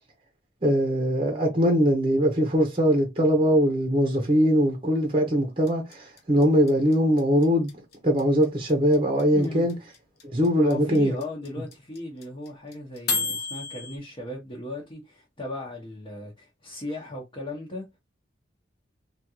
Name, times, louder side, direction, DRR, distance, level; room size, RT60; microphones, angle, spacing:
voice 1, 0.6-7.7 8.0-9.7 10.3-11.1, equal, 30° right, 0.8 m, -21 dB
sound 1, 5.7-14.0, left 5 dB, 55° left, 0.9 m, -31 dB
voice 2, 9.3-9.7 10.6-17.8, left 1 dB, 25° left, 1.0 m, -36 dB
3.6 x 2.4 x 2.9 m
head